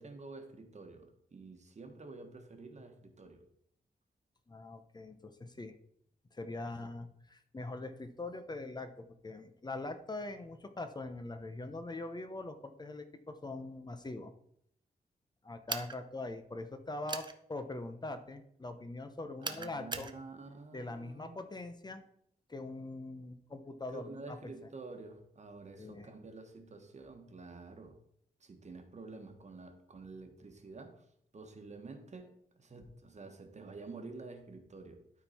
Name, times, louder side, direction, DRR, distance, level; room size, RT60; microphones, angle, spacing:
voice 1, 0.0-3.4 6.6-6.9 19.4-21.4 23.9-28.0 28.4-31.0 31.3-35.0, right 3 dB, 45° right, 5 dB, 1.3 m, -49 dB
voice 2, 4.5-5.8 6.3-14.3 15.4-20.1 20.7-22.0 22.5-24.4 25.8-26.1, left 2 dB, 25° left, 8 dB, 0.7 m, -42 dB
sound 1, 15.7-16.0 17.1-17.3 19.4-20.1, right 4 dB, 30° right, 0.7 m, -38 dB
12.5 x 4.5 x 4.2 m, 0.70 s
wide cardioid pair, 125°, 16 cm